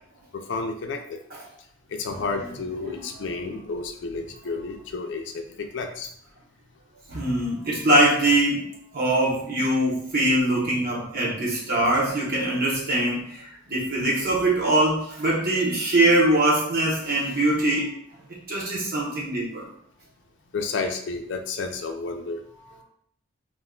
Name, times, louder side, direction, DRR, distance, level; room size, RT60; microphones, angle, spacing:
voice 1, 0.3-1.2 1.9-6.1 20.5-22.4, left 4 dB, 65° left, 5 dB, 0.4 m, -31 dB
voice 2, 7.1-17.9 18.5-19.7, right 1 dB, 50° right, -5 dB, 0.8 m, -23 dB
2.5 x 2.3 x 3.6 m, 0.66 s
head